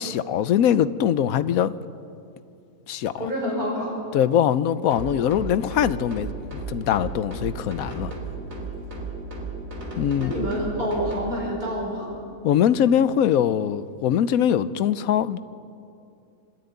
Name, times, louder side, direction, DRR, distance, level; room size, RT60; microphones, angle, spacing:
voice 1, 0.0-1.7 2.9-3.3 4.1-8.1 10.0-10.3 12.4-15.4, left 9 dB, 80° left, 1.1 m, -22 dB
voice 2, 3.2-4.0 10.2-12.1, equal, 85° right, 6.7 m, -27 dB
sound 1, 4.9-11.3, right 3 dB, 65° right, 3.4 m, -34 dB
25.5 x 12.0 x 9.3 m
omnidirectional pair, 1.5 m